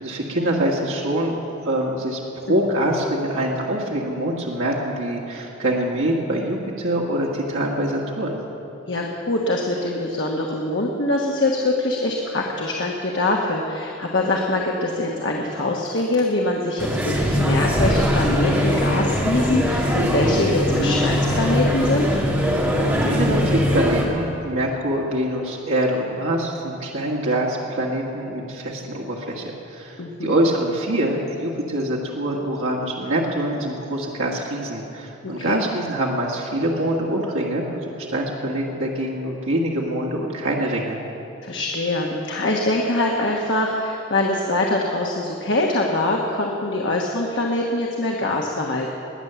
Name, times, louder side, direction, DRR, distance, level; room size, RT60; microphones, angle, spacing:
voice 1, 0.0-8.4 22.5-22.7 23.0-41.0, right 1 dB, 80° right, -3 dB, 1.8 m, -24 dB
voice 2, 8.9-22.1 30.0-30.3 35.2-35.6 41.4-48.9, left 2 dB, 60° left, -1 dB, 1.3 m, -23 dB
sound 1, 16.8-24.1, equal, 10° right, 1.8 m, -21 dB
21.0 x 8.8 x 7.0 m, 2.8 s
head